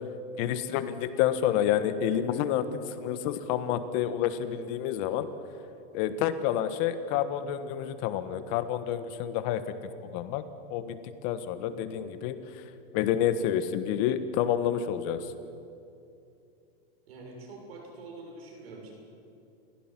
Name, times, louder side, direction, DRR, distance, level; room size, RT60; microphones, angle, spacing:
voice 1, 0.4-5.3 5.9-9.8 10.0-12.6 12.9-15.3, left 10 dB, 50° left, 11 dB, 1.4 m, -29 dB
voice 2, 17.1-18.9, right 3 dB, 85° right, 0 dB, 7.1 m, -45 dB
29.0 x 16.0 x 6.0 m, 2.6 s
supercardioid pair, 125°, 30 cm